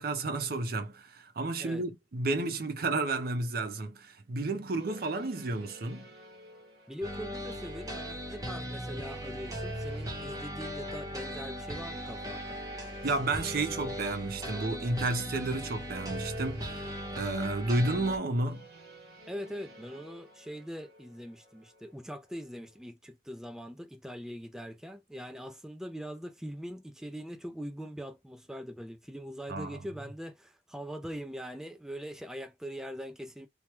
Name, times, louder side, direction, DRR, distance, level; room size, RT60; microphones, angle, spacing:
voice 1, 0.0-6.1 13.0-16.9 17.2-18.7 29.5-29.8, right 2 dB, 55° right, 0.6 m, -31 dB
sound 1, 4.8-22.9, right 4 dB, 90° right, 1.8 m, -53 dB
voice 2, 6.9-12.6 19.3-33.5, equal, 5° right, 0.4 m, -42 dB
sound 2, 7.0-18.2, equal, 20° right, 0.8 m, -38 dB
3.2 x 2.2 x 2.9 m
head